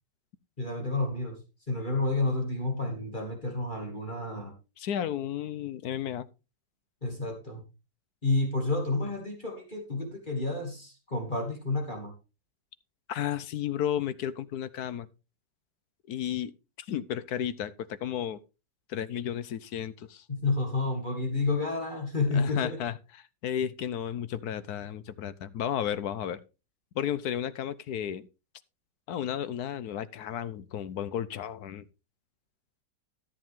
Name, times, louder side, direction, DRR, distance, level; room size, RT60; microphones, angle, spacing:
voice 1, 0.6-1.4 1.7-4.5 7.0-7.6 8.2-12.1 20.3-22.8, left 3 dB, 25° left, 2.6 m, -30 dB
voice 2, 4.8-6.3 13.1-15.1 16.1-16.5 16.9-17.7 18.0-18.4 18.9-20.2 22.3-22.9 23.4-26.4 26.9-28.3 29.1-31.8, left 10 dB, 65° left, 1.2 m, -33 dB
13.5 x 7.7 x 3.6 m
omnidirectional pair, 1.9 m